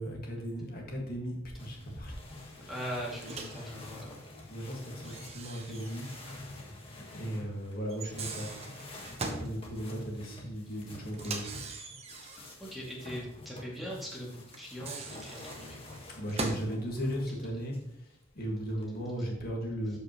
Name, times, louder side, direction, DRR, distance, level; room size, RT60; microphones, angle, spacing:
voice 1, 0.0-2.2 2.6-2.8 4.5-6.1 7.0-8.5 9.4-11.5 16.1-20.0, equal, 45° left, 0 dB, 1.9 m, -37 dB
sound 1, 1.6-17.9 18.6-19.3, left 2 dB, 25° left, 1.5 m, -48 dB
voice 2, 2.7-4.2 12.3-15.8, equal, ahead, -5 dB, 2.3 m, -41 dB
Microwave oven, 3.2-3.7 5.0-6.4 6.7-6.8 7.9-9.5 11.1-12.6 14.5-16.7, right 3 dB, 30° right, 0.9 m, -40 dB
12.0 x 5.4 x 3.0 m, 0.80 s
head